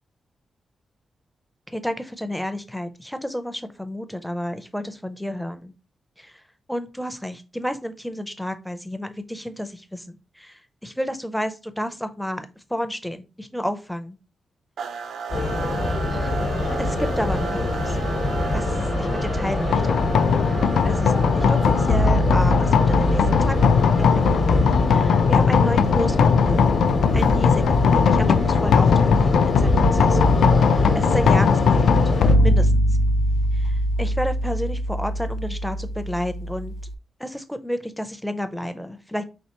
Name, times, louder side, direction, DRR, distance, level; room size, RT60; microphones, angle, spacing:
voice 1, 1.7-5.7 6.2-6.3 6.7-14.2 16.1-18.0 18.5-24.4 24.9-26.9 27.1-30.4 30.7-31.9 32.4-32.7 33.5-36.7 37.2-39.2, equal, ahead, 10 dB, 0.4 m, -31 dB
sound 1, 14.8-32.6, right 5 dB, 80° right, 0.4 m, -35 dB
sound 2, 15.3-32.3, left 2 dB, 50° left, 0.9 m, -24 dB
sound 3, 19.7-36.9, left 5 dB, 90° left, 0.3 m, -20 dB
4.3 x 3.2 x 2.9 m, 0.31 s
wide cardioid pair, 135°, 0 cm